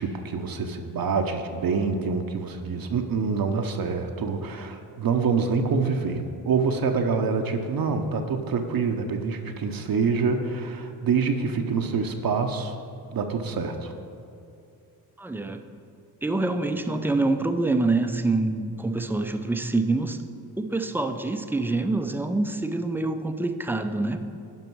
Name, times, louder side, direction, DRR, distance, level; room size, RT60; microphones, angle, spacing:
voice 1, 0.0-12.7 13.1-13.9, right 5 dB, 45° right, 5 dB, 0.8 m, -26 dB
voice 2, 15.2-15.6 16.2-20.2 20.6-24.2, right 2 dB, 5° right, 7 dB, 0.5 m, -26 dB
11.0 x 5.3 x 4.6 m, 2.5 s
supercardioid pair, 55°, 48 cm